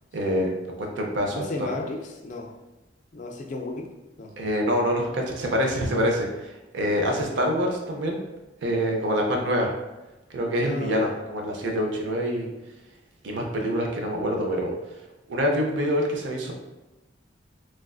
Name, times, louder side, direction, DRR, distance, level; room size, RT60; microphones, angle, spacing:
voice 1, 0.1-0.5 0.8-1.4 4.4-8.2 8.6-9.7 10.3-12.5 13.2-14.7 15.3-16.5, equal, 80° right, 1 dB, 0.5 m, -25 dB
voice 2, 1.3-2.5 3.1-3.9 4.2-4.3 10.6-11.1, left 2 dB, 40° left, 3 dB, 0.3 m, -34 dB
3.2 x 2.4 x 2.3 m, 1.0 s
head